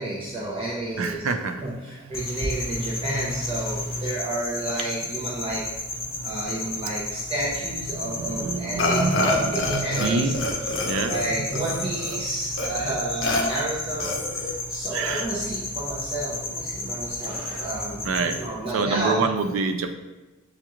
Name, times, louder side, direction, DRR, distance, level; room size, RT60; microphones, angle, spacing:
voice 1, 0.0-1.2 1.6-5.7 6.2-10.3 11.1-19.3, right 1 dB, 25° right, -6 dB, 0.6 m, -31 dB
voice 2, 1.0-1.6 6.0-6.4 6.8-7.0 7.8-10.4 10.8-11.8 13.4-13.7 14.9-15.4 18.0-18.4 18.7-19.9, right 4 dB, 75° right, 8 dB, 0.4 m, -27 dB
sound 1, 2.1-18.5, left 2 dB, 45° left, 1.0 m, -32 dB
Burping eructation, 8.8-10.1 10.3-12.2 12.6-12.7 13.2-13.4 14.0-14.5, left 2 dB, 65° left, 0.6 m, -27 dB
7.2 x 2.4 x 2.9 m, 1.1 s
head